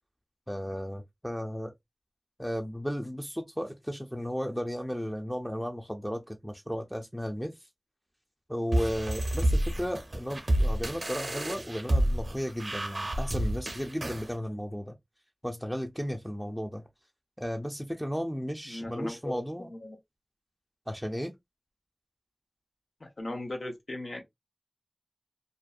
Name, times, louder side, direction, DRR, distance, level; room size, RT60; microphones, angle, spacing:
voice 1, 0.5-1.7 2.4-7.7 8.5-15.0 15.4-16.8 17.4-19.7 20.9-21.3, equal, ahead, 0.4 m, -34 dB
sound 1, 8.7-14.3, right 1 dB, 70° right, 0.5 m, -29 dB
voice 2, 18.7-19.3 19.6-20.0 23.0-24.2, left 1 dB, 85° left, 0.7 m, -37 dB
2.5 x 2.2 x 2.3 m
wide cardioid pair, 40°, 0 cm